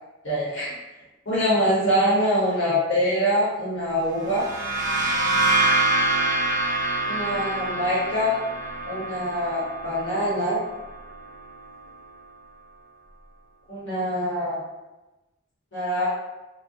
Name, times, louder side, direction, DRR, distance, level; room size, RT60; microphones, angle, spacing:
voice 1, 0.2-0.7 1.3-4.5 7.1-8.4 8.8-10.6 13.7-14.6 15.7-16.1, equal, 65° left, -8 dB, 0.8 m, -24 dB
sound 1, 4.2-11.8, right 2 dB, 45° right, 0.6 m, -26 dB
2.4 x 2.1 x 2.6 m, 1.1 s
head